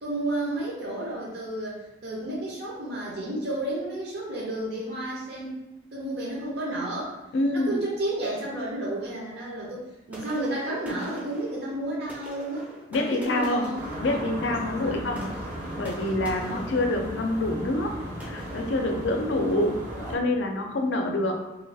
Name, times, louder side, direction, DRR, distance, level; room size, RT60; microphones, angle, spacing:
voice 1, 0.0-5.6 5.9-7.2 7.5-13.8 14.6-15.0 16.4-16.7, right 1 dB, 55° right, -5 dB, 0.6 m, -32 dB
voice 2, 7.3-7.7 12.9-13.7 14.0-15.2 15.8-17.9 18.2-19.8 20.1-21.3, left 1 dB, 70° left, 3 dB, 0.4 m, -26 dB
sound 1, 10.1-19.8, right 1 dB, 10° right, 0.5 m, -45 dB
sound 2, 13.7-20.2, equal, 75° right, 1.1 m, -36 dB
3.0 x 2.3 x 2.6 m, 1.0 s
head